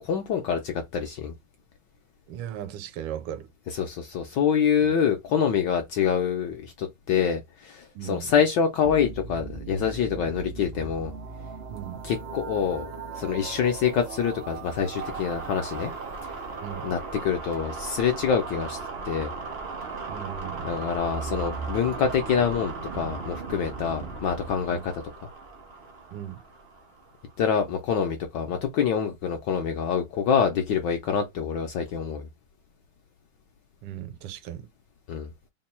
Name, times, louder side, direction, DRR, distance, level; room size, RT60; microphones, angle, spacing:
voice 1, 0.0-1.3 3.7-11.1 12.0-12.9 13.2-15.9 16.8-18.8 19.0-19.3 20.6-24.8 27.4-32.3 35.1-35.3, left 7 dB, 75° left, 1.0 m, -26 dB
voice 2, 2.3-3.5 4.8-4.9 7.9-8.4 11.7-12.1 16.6-16.9 20.1-20.8 24.0-24.1 24.7-24.8 26.1-26.4 33.8-34.7, right 11 dB, 85° right, 1.5 m, -37 dB
sound 1, 8.8-27.3, right 4 dB, 60° right, 0.6 m, -37 dB
3.6 x 2.2 x 4.1 m
omnidirectional pair, 2.4 m